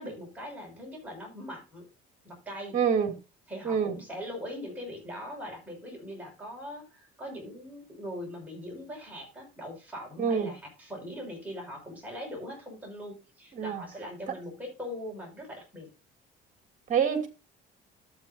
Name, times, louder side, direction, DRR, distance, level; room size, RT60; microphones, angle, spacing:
voice 1, 0.0-1.9 2.2-2.8 3.5-15.9, equal, 10° right, 5.7 m, -41 dB
voice 2, 2.7-3.1 3.6-3.9 10.2-10.5 13.5-13.8 16.9-17.3, right 7 dB, 40° right, 2.6 m, -26 dB
13.5 x 8.2 x 2.6 m
cardioid pair, 140°, 20 cm